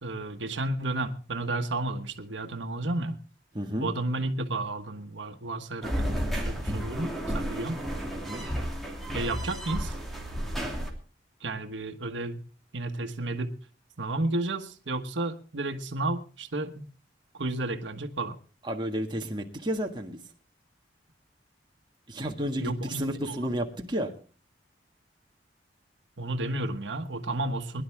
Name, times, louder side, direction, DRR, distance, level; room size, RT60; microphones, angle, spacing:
voice 1, 0.0-3.2 3.7-7.8 9.1-9.9 11.4-12.4 12.7-13.6 14.0-16.9 17.4-18.4 22.6-23.5 26.2-27.8, right 2 dB, 90° right, 1.3 m, -32 dB
voice 2, 3.5-3.9 8.1-8.4 18.6-20.2 22.1-24.1, equal, 25° right, 1.7 m, -31 dB
sound 1, 5.8-10.9, equal, ahead, 2.8 m, -32 dB
22.0 x 11.0 x 3.5 m
head